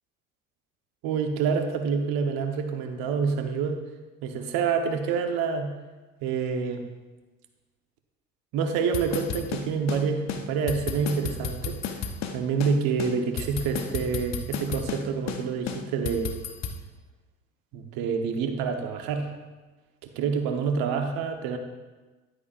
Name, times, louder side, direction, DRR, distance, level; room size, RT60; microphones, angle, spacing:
voice 1, 1.0-3.8 4.2-5.7 6.2-6.8 8.5-16.4 17.7-19.3 20.0-21.6, right 5 dB, 60° right, 5 dB, 1.2 m, -27 dB
sound 1, 8.9-10.0 10.3-10.4 10.7-12.3 12.6-12.7 13.0-15.0 15.3-15.4 15.7-16.8, left 6 dB, 40° left, 1.0 m, -32 dB
11.0 x 9.7 x 2.6 m, 1.2 s
figure-of-eight pair, 60°, 40 cm